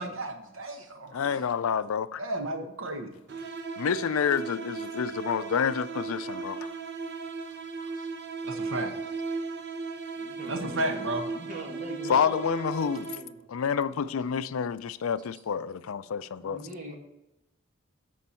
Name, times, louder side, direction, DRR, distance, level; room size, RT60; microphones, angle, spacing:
voice 1, 0.0-1.4 2.2-3.1 8.4-8.9 10.5-11.3, right 1 dB, 80° right, 1.3 m, -33 dB
voice 2, 1.1-2.2 3.8-6.7 12.1-13.2 13.5-16.6, left 7 dB, 85° left, 0.4 m, -28 dB
sound 1, 3.3-13.5, right 4 dB, 55° right, 0.7 m, -36 dB
voice 3, 10.2-12.4 12.9-13.4 16.4-16.9, equal, 40° right, 1.9 m, -41 dB
13.0 x 4.5 x 4.4 m
head